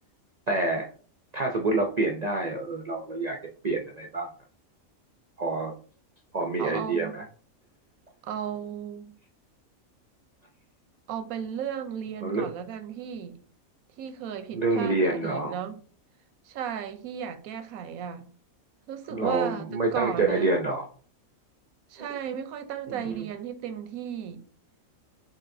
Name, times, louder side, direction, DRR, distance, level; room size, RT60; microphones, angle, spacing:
voice 1, 0.5-0.9 1.3-3.4 3.6-4.3 5.4-5.7 6.3-7.2 12.2-12.5 14.5-15.5 19.1-20.8 22.9-23.2, right 3 dB, 65° right, 0.4 m, -27 dB
voice 2, 6.6-7.1 8.2-9.2 11.1-13.4 14.0-15.8 16.4-18.3 18.9-19.7 19.9-20.6 21.9-24.4, right 8 dB, 90° right, 1.1 m, -35 dB
5.4 x 3.6 x 2.6 m
omnidirectional pair, 1.5 m